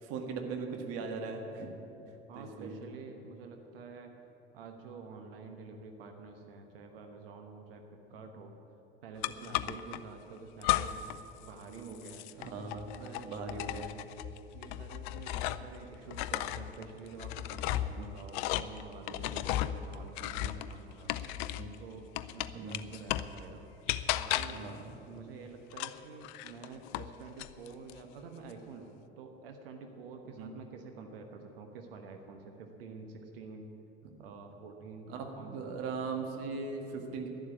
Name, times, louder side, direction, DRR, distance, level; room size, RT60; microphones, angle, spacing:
voice 1, 0.0-1.7 2.3-2.8 9.6-9.7 11.7-12.0 12.4-12.9 13.2-13.9 17.9-18.1 19.1-19.5 20.3-20.5 21.3-21.7 22.5-22.8 24.5-24.9 30.4-30.5 35.1-37.3, right 4 dB, 50° right, 3 dB, 1.8 m, -39 dB
voice 2, 2.3-4.1 4.5-8.5 9.0-11.0 11.4-12.3 13.0-13.3 14.5-21.2 21.8-23.6 24.1-24.6 25.0-33.7 34.2-35.8, right 4 dB, 65° right, 4 dB, 1.2 m, -48 dB
sound 1, 9.2-10.0 10.6-11.2 11.5-15.8 16.1-21.7 22.1-23.4 23.9-24.7 25.7-27.1 27.4-28.0, left 14 dB, 50° left, 0.5 m, -35 dB
12.0 x 10.5 x 8.5 m, 2.9 s
figure-of-eight pair, 70°, 31 cm